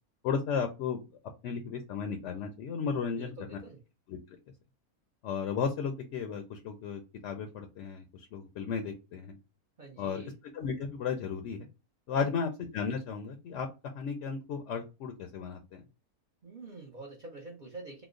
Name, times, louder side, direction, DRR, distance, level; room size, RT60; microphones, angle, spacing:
voice 1, 0.2-1.0 1.4-3.3 4.1-4.2 5.2-9.4 10.0-11.7 12.1-15.8, left 6 dB, 65° left, 0.8 m, -34 dB
voice 2, 3.1-3.8 9.8-10.3 12.1-12.3 16.4-18.0, right 2 dB, 50° right, 0.5 m, -46 dB
3.0 x 2.0 x 3.6 m
omnidirectional pair, 1.6 m